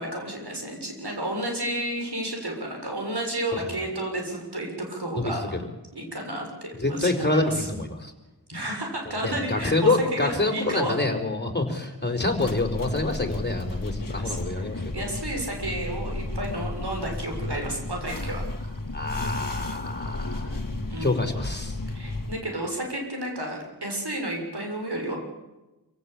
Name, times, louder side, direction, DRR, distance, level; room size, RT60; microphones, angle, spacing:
voice 1, 0.0-5.6 5.9-7.7 8.5-11.0 12.4-12.5 14.2-18.4 20.9-21.2 21.9-25.2, right 1 dB, 75° right, 2 dB, 7.0 m, -31 dB
voice 2, 6.8-8.1 9.2-15.1 18.9-20.6 21.0-21.7, left 2 dB, 25° left, 5 dB, 4.8 m, -26 dB
sound 1, 12.3-22.4, left 2 dB, 55° left, 1.8 m, -33 dB
27.0 x 17.0 x 8.7 m, 1.1 s
wide cardioid pair, 45°, 39 cm